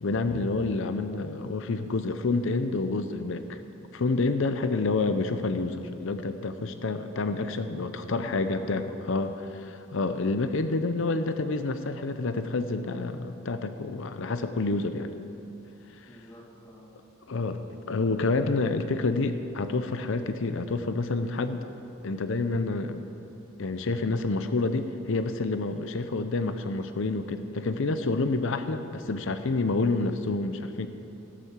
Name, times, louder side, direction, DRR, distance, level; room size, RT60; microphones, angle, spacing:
voice 1, 0.0-3.6 3.9-15.1 16.0-16.1 17.3-17.6 17.9-21.6 22.0-23.1 23.6-30.9, left 3 dB, 65° left, 9 dB, 0.6 m, -28 dB
voice 2, 4.4-4.7 8.1-8.9 16.1-16.9 28.6-28.7, equal, 15° left, -4 dB, 2.5 m, -46 dB
18.0 x 6.8 x 7.3 m, 2.9 s
head